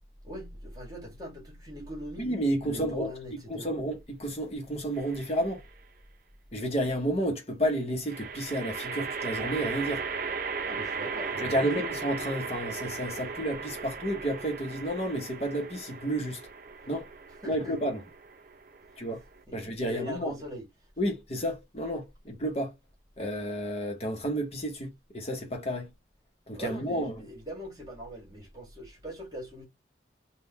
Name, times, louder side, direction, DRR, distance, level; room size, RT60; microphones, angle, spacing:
voice 1, 0.2-2.3 2.6-3.7 10.6-11.9 17.4-17.8 18.8-19.0 19.5-20.7 26.5-29.6, left 1 dB, 20° right, 1.7 m, -41 dB
voice 2, 2.2-3.1 3.5-5.6 6.5-10.0 11.4-16.4 16.9-17.1 17.5-18.0 19.0-19.2 19.5-20.3 21.0-22.7 23.2-25.9 26.5-27.1, right 1 dB, 35° left, 0.9 m, -31 dB
sound 1, 4.9-5.5 8.1-19.4, right 5 dB, 50° right, 0.6 m, -37 dB
3.7 x 2.3 x 4.0 m
head